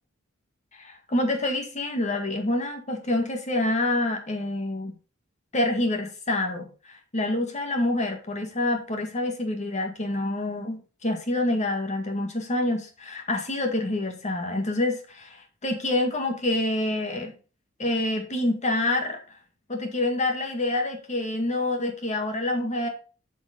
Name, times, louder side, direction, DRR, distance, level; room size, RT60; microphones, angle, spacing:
voice 1, 0.7-4.9 5.5-17.4 17.8-19.2 19.7-22.9, left 1 dB, 35° left, 4 dB, 2.0 m, -27 dB
8.4 x 5.3 x 5.1 m, 0.35 s
head